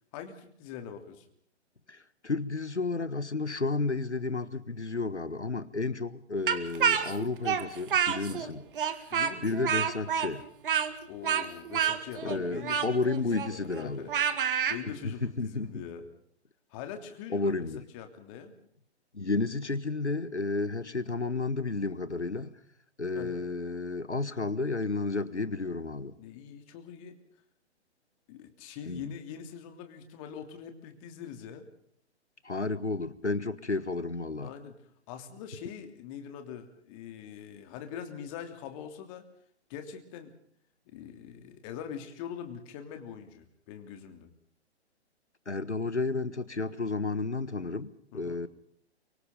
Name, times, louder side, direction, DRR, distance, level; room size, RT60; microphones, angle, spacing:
voice 1, 0.1-1.3 8.3-8.5 9.1-9.7 11.1-13.0 13.2-14.1 14.7-16.1 16.7-17.7 17.9-18.6 23.1-23.4 26.2-27.2 28.3-31.7 34.4-34.8 35.1-39.2 39.7-40.3 40.9-44.3 48.1-48.4, left 8 dB, 30° left, 3.1 m, -43 dB
voice 2, 1.9-8.6 9.4-10.4 12.2-14.1 15.0-15.8 17.3-17.8 19.1-22.6 23.0-26.2 28.9-29.1 32.4-34.5 45.4-48.5, left 3 dB, 85° left, 1.5 m, -32 dB
Speech, 6.5-8.5 8.8-14.8, right 8 dB, 50° right, 2.1 m, -28 dB
29.0 x 24.5 x 3.9 m
figure-of-eight pair, 125°, 33 cm